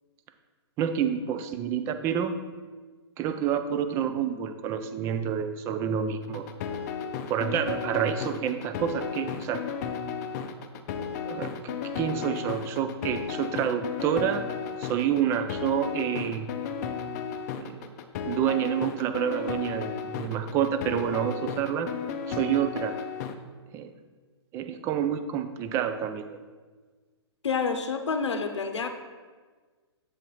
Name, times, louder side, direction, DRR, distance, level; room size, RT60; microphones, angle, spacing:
voice 1, 0.8-2.4 3.2-6.5 7.3-9.6 11.3-11.5 12.0-14.4 14.8-16.5 17.5-17.8 18.2-21.9 22.3-22.9 23.7-23.9 24.5-26.3, right 8 dB, 20° right, 9 dB, 0.4 m, -28 dB
sound 1, 6.2-23.3, left 7 dB, 40° left, 0.5 m, -34 dB
voice 2, 27.4-28.9, left 5 dB, 90° left, 7 dB, 0.7 m, -28 dB
7.8 x 4.0 x 4.5 m, 1.4 s
hypercardioid pair, 145°, 14 cm